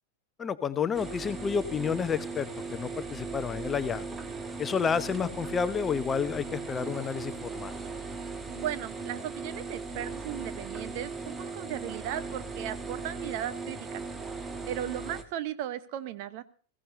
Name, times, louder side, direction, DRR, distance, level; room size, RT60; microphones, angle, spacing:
voice 1, 0.4-4.2 4.6-7.8, left 6 dB, 20° left, 13 dB, 0.8 m, -30 dB
sound 1, 0.9-15.2, right 4 dB, 15° right, 1.3 m, -38 dB
voice 2, 8.5-14.0 14.7-16.4, right 11 dB, 45° right, 13 dB, 0.9 m, -36 dB
20.5 x 15.5 x 2.7 m, 0.42 s
figure-of-eight pair, 90°, 0 cm